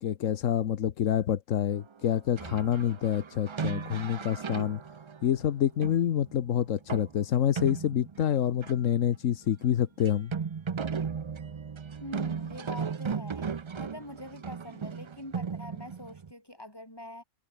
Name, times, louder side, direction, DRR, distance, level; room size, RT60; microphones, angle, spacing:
voice 1, 0.0-4.8 5.2-10.3, left 10 dB, 85° left, 1.3 m, -27 dB
sound 1, 2.4-9.0 9.3-9.4 9.6-9.7 10.1-16.3, right 6 dB, 50° right, 0.3 m, -36 dB
voice 2, 12.0-17.2, left 1 dB, 20° left, 6.1 m, -44 dB
omnidirectional pair, 1.3 m